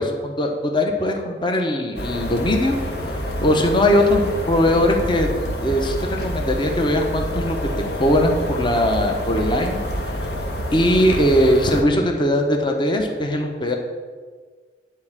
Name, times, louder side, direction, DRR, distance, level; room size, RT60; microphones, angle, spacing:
voice 1, 0.0-5.3 5.6-7.6 8.0-9.8 10.7-13.8, left 1 dB, 30° left, 3 dB, 0.9 m, -20 dB
sound 1, 2.0-11.8, equal, 65° left, 1.3 m, -27 dB
10.5 x 4.4 x 7.4 m, 1.6 s
head